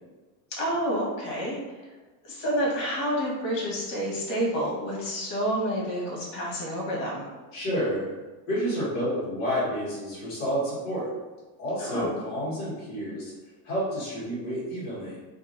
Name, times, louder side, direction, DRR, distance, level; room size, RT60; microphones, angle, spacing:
voice 1, 0.5-1.8 2.2-7.3 11.8-12.1, equal, 60° left, -4 dB, 1.3 m, -29 dB
voice 2, 7.5-8.1 8.5-11.1 11.6-13.3 13.6-15.2, equal, 30° left, -9 dB, 1.4 m, -29 dB
2.8 x 2.6 x 2.5 m, 1.2 s
cardioid pair, 170°, 43 cm